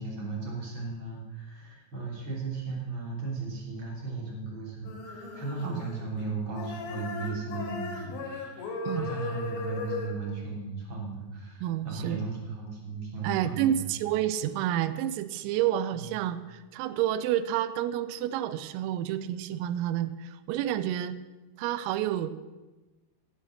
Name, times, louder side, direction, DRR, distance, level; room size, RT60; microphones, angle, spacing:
voice 1, 0.0-13.9 15.9-16.1, right 4 dB, 30° right, -2 dB, 3.0 m, -36 dB
sound 1, 4.8-6.3 6.5-10.1, left 4 dB, 70° left, 5.0 m, -37 dB
voice 2, 11.6-12.2 13.2-21.2 21.6-22.3, right 11 dB, 85° right, 13 dB, 3.4 m, -29 dB
16.5 x 8.9 x 6.5 m, 1.1 s
omnidirectional pair, 6.0 m